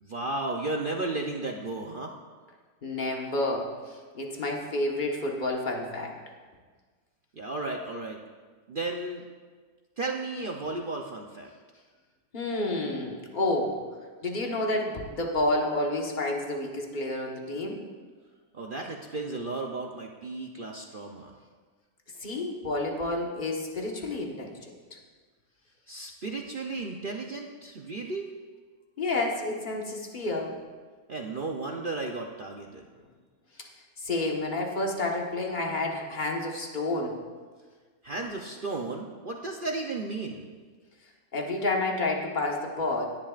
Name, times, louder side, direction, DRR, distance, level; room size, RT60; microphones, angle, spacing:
voice 1, 0.0-2.1 7.4-8.2 8.7-9.2 10.0-11.5 18.5-21.4 25.9-28.3 31.1-32.8 38.0-40.5, right 2 dB, 50° right, 1 dB, 0.6 m, -34 dB
voice 2, 2.8-6.1 12.3-13.8 14.2-17.8 22.2-24.6 24.9-25.0 29.0-30.5 34.0-37.1 41.3-43.0, left 2 dB, 30° left, 0 dB, 1.4 m, -29 dB
17.5 x 11.0 x 2.5 m, 1.5 s
omnidirectional pair, 1.8 m